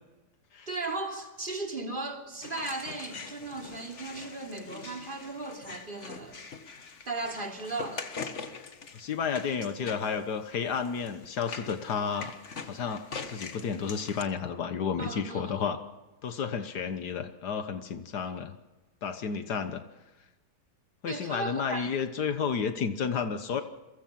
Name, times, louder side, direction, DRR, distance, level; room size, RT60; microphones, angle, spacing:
voice 1, 0.7-6.5 7.1-8.1 9.5-9.7 15.0-15.6 21.1-21.9, right 2 dB, 30° right, 3.4 m, -36 dB
sound 1, 2.4-14.2, left 5 dB, 50° left, 1.7 m, -43 dB
voice 2, 8.9-12.3 12.6-15.8 16.2-18.6 19.0-19.8 21.0-23.6, left 6 dB, 85° left, 1.8 m, -31 dB
28.5 x 23.5 x 5.9 m
omnidirectional pair, 1.7 m